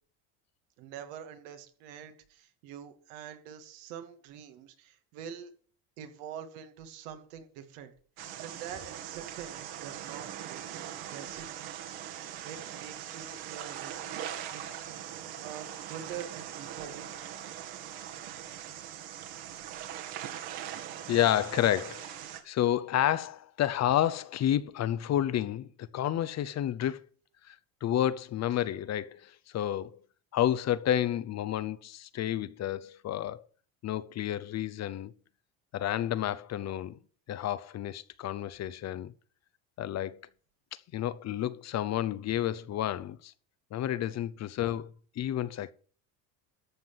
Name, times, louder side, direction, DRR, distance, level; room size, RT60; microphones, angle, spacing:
voice 1, 0.8-5.5 6.0-7.9 8.4-11.6 12.4-14.7 15.4-17.1, right 8 dB, 80° right, 2.5 m, -45 dB
sound 1, 8.2-22.4, right 10 dB, 65° right, 2.3 m, -41 dB
voice 2, 21.1-27.1 27.5-27.6 27.8-30.0 30.3-33.4 33.8-35.1 35.7-37.0 37.3-39.1 39.8-40.2 40.9-43.3 43.7-45.7, left 11 dB, 40° left, 0.8 m, -30 dB
13.5 x 5.9 x 7.2 m
supercardioid pair, 115°, 41 cm